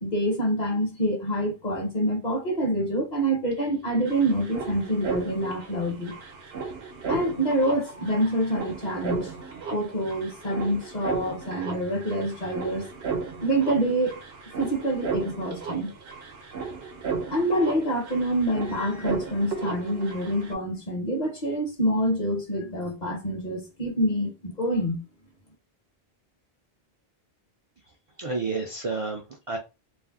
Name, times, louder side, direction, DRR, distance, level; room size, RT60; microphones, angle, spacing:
voice 1, 0.0-6.1 7.1-9.3 9.7-12.9 13.4-14.2 14.6-15.9 17.3-25.0, right 1 dB, 50° left, 0.8 m, -26 dB
sound 1, 3.5-3.6 3.8-20.5, right 5 dB, 80° right, 0.9 m, -35 dB
voice 2, 28.2-29.6, right 3 dB, 50° right, 0.4 m, -30 dB
2.5 x 2.0 x 3.4 m
omnidirectional pair, 1.0 m